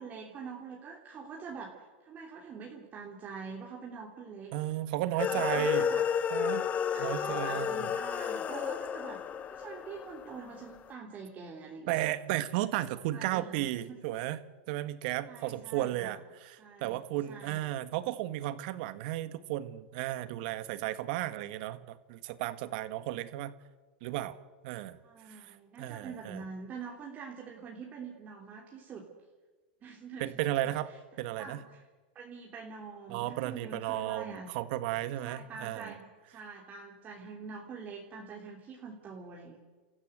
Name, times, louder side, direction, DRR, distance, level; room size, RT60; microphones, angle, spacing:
voice 1, 0.0-4.5 5.1-6.0 6.9-9.2 9.5-12.1 12.9-14.0 15.3-16.2 16.6-17.0 17.3-17.7 25.0-29.1 29.8-30.8 31.4-31.8 32.2-34.5 35.2-39.6, right 5 dB, 30° right, -1 dB, 3.5 m, -45 dB
voice 2, 4.5-5.9 6.3-6.6 7.0-7.9 11.9-14.4 14.7-23.5 24.0-24.4 24.6-25.0 25.3-26.4 30.2-30.9 31.2-31.6 33.1-35.9, right 14 dB, 60° right, 13 dB, 1.6 m, -34 dB
sound 1, 5.2-10.6, left 8 dB, 25° left, 1.2 m, -32 dB
30.0 x 15.0 x 8.0 m, 1.3 s
hypercardioid pair, 125°, 6 cm